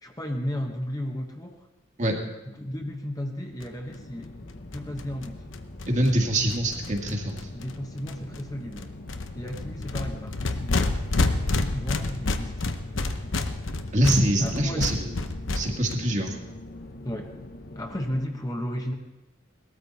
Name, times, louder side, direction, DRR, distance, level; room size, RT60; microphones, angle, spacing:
voice 1, 0.0-1.7 2.4-4.3 4.7-5.4 7.5-8.9 9.3-11.0 11.5-12.8 14.4-14.8 17.0-17.3 17.7-18.9, equal, 20° left, 2 dB, 1.1 m, -34 dB
sound 1, 3.6-3.7 3.9-4.0 4.2-4.3 4.5-7.7 8.1-8.4 8.7-15.9, left 2 dB, 70° left, 0.9 m, -29 dB
sound 2, 3.9-18.2, left 2 dB, 50° left, 1.1 m, -43 dB
voice 2, 5.9-7.5 13.9-15.2 15.5-16.4, right 1 dB, 40° right, 1 dB, 1.8 m, -24 dB
18.5 x 13.5 x 4.2 m, 1.0 s
head